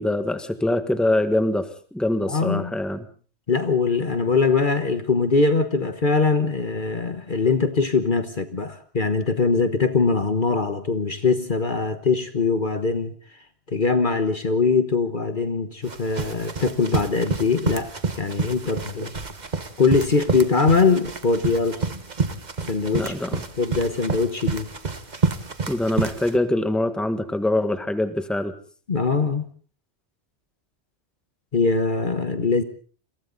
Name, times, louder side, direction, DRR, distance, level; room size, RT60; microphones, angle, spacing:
voice 1, 0.0-3.0 22.9-23.4 25.7-28.5, left 1 dB, ahead, 9 dB, 1.5 m, -24 dB
voice 2, 2.3-2.7 3.5-13.1 13.7-17.9 18.2-19.1 19.8-21.8 22.7-23.1 23.6-24.7 28.9-29.4 31.5-32.6, left 4 dB, 45° left, 10 dB, 1.3 m, -22 dB
sound 1, 15.8-26.4, right 4 dB, 40° right, 1.4 m, -29 dB
29.5 x 23.0 x 4.0 m, 0.42 s
omnidirectional pair, 1.2 m